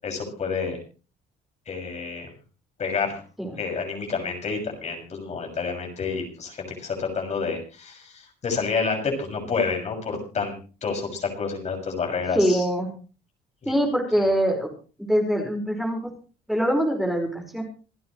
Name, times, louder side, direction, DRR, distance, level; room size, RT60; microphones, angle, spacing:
voice 1, 0.0-0.8 1.7-2.3 2.8-3.2 3.6-10.5 10.8-12.6 13.6-13.7, left 5 dB, 40° left, 2 dB, 6.6 m, -29 dB
voice 2, 12.3-12.9 13.6-14.7 15.1-16.1 16.5-17.3 17.5-17.6, equal, ahead, 2 dB, 5.0 m, -23 dB
28.0 x 9.7 x 3.2 m, 0.36 s
cardioid pair, 110°, 17 cm